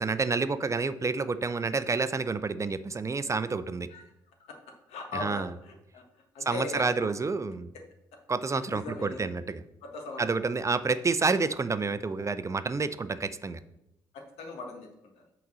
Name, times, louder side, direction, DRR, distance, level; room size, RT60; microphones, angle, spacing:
voice 1, 0.0-3.9 5.1-5.5 6.5-7.7 8.3-9.6 10.2-13.6, right 4 dB, 30° right, 13 dB, 0.5 m, -29 dB
voice 2, 4.9-6.0 6.3-7.1 8.7-9.2 9.8-10.2 14.1-14.9, left 3 dB, 70° left, 2 dB, 1.5 m, -39 dB
5.8 x 4.0 x 6.2 m, 0.84 s
hypercardioid pair, 50°, 11 cm